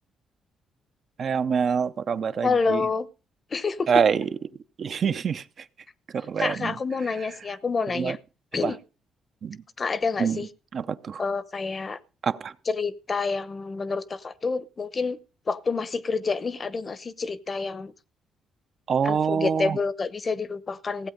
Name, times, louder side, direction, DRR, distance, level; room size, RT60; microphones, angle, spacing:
voice 1, 1.2-2.9 3.9-4.3 4.8-5.4 6.1-6.8 7.9-8.2 8.6-8.8 9.4-9.6 10.2-11.2 12.2-12.5 18.9-19.8, right 6 dB, 55° right, 0.6 m, -25 dB
voice 2, 2.4-3.1 3.5-3.9 6.4-8.2 8.5-8.8 9.8-10.5 11.2-12.0 12.7-15.2 15.5-17.9 19.0-21.1, left 4 dB, 35° left, 0.8 m, -28 dB
16.0 x 8.0 x 5.2 m
cardioid pair, 90°, 0 cm